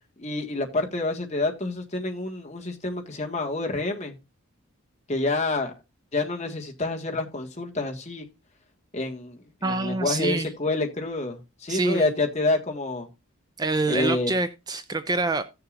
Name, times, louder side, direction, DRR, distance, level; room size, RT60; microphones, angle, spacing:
voice 1, 0.2-4.1 5.1-5.7 6.1-8.3 8.9-13.1 13.9-14.3, left 2 dB, 30° left, 1.7 m, -28 dB
voice 2, 9.6-10.5 11.7-12.1 13.6-15.4, right 2 dB, 20° right, 0.4 m, -26 dB
16.0 x 6.7 x 2.5 m
head